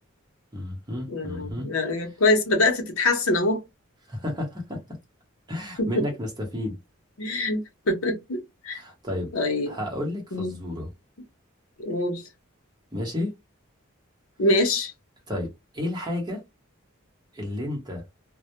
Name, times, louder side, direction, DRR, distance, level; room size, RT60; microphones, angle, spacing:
voice 1, 0.5-1.7 4.1-4.8 5.5-6.8 8.7-9.3 9.7-10.9 12.9-13.3 15.3-15.5 15.7-16.4 17.3-18.0, left 1 dB, 20° right, 0.8 m, -31 dB
voice 2, 1.1-3.6 5.8-6.0 7.2-7.6 7.9-8.4 8.6-8.8 9.3-9.8 10.3-10.5 11.8-12.2 14.4-14.9, left 2 dB, 80° left, 0.7 m, -24 dB
2.1 x 2.1 x 2.8 m
head